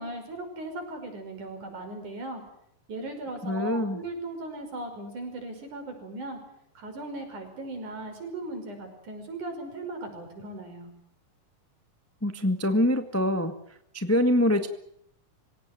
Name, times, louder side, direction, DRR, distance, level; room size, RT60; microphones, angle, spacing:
voice 1, 0.0-2.4 2.9-6.4 6.8-10.9, right 2 dB, 65° right, 5 dB, 7.0 m, -38 dB
voice 2, 3.4-4.0 12.2-13.5 13.9-14.7, left 1 dB, 10° left, 8 dB, 0.6 m, -24 dB
26.0 x 17.0 x 9.2 m, 0.72 s
omnidirectional pair, 3.8 m